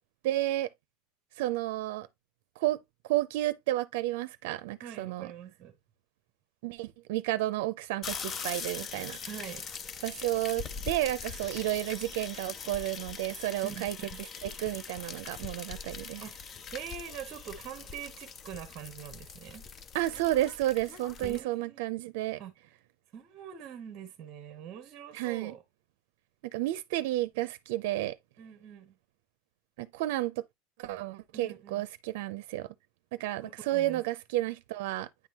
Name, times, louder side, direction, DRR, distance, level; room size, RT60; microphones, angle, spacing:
voice 1, 0.2-0.7 1.4-2.1 2.6-2.8 3.1-5.3 6.6-9.2 10.0-14.0 14.4-16.2 19.9-22.4 25.1-25.5 26.5-28.2 29.8-30.4 30.8-32.7 33.1-35.1, right 15 dB, 65° right, 0.5 m, -31 dB
voice 2, 4.8-5.8 9.3-9.6 13.6-14.2 16.2-16.3 16.7-19.6 21.2-21.8 22.4-22.5 23.1-25.6 28.4-29.0 31.3-31.8 33.4-34.0, right 9 dB, 30° right, 0.9 m, -44 dB
sound 1, 8.0-21.4, left 6 dB, 20° left, 0.5 m, -42 dB
9.5 x 3.7 x 2.9 m
supercardioid pair, 175°, 0 cm